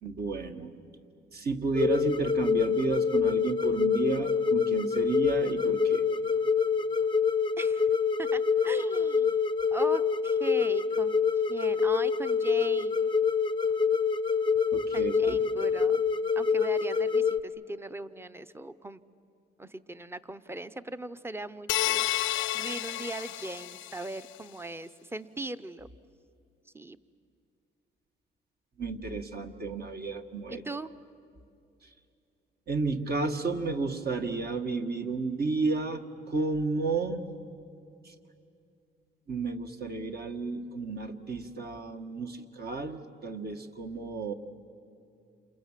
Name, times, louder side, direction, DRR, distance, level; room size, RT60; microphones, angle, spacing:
voice 1, 0.0-0.8 1.3-6.0 14.7-15.4 28.8-30.6 32.7-37.2 38.1-38.2 39.3-44.3, right 3 dB, 50° right, 5 dB, 1.8 m, -32 dB
sound 1, 1.7-17.4, left 6 dB, 25° left, 0.6 m, -26 dB
voice 2, 7.6-7.9 8.2-9.4 9.7-11.2 11.5-13.1 14.9-16.0 16.4-19.0 19.6-22.1 22.5-25.9 26.7-27.0 30.5-30.9, right 2 dB, 10° right, 13 dB, 0.8 m, -39 dB
sound 2, 21.7-24.2, left 14 dB, 85° left, 0.7 m, -30 dB
28.5 x 28.0 x 7.5 m, 2.6 s
cardioid pair, 90°, 20 cm